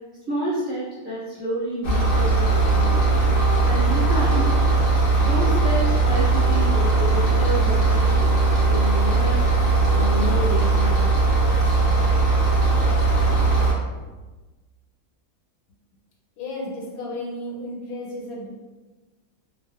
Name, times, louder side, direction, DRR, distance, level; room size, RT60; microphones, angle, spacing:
voice 1, 0.3-3.1 3.6-4.5 5.2-8.4 8.7-9.4 9.9-11.0, right 1 dB, 30° right, -11 dB, 0.8 m, -29 dB
sound 1, 1.8-13.7, right 3 dB, 50° left, 0.6 m, -19 dB
voice 2, 16.4-18.5, left 1 dB, 85° left, -3 dB, 1.1 m, -33 dB
2.5 x 2.3 x 2.3 m, 1.2 s
omnidirectional pair, 1.5 m